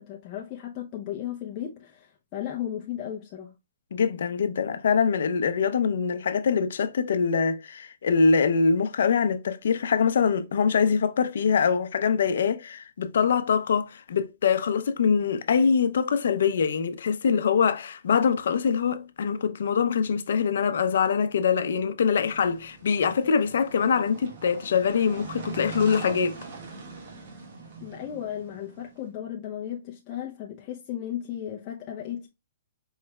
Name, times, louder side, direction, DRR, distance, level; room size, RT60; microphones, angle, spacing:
voice 1, 0.0-3.5 27.8-32.3, left 10 dB, 25° left, 0.6 m, -35 dB
voice 2, 3.9-26.4, left 6 dB, 70° left, 0.6 m, -24 dB
sound 1, 22.0-29.0, right 4 dB, 50° right, 1.2 m, -42 dB
4.7 x 3.1 x 2.3 m
hypercardioid pair, 160°, 0 cm